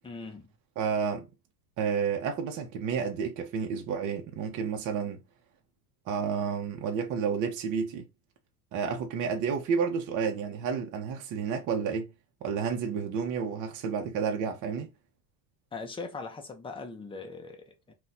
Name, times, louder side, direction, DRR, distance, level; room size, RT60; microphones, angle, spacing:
voice 1, 0.0-0.5 15.7-17.9, left 4 dB, 10° left, 0.5 m, -40 dB
voice 2, 0.8-1.3 1.8-5.2 6.1-8.1 8.7-12.1 12.4-14.9, right 6 dB, 40° right, 0.7 m, -30 dB
2.7 x 2.3 x 4.0 m
supercardioid pair, 125°, 47 cm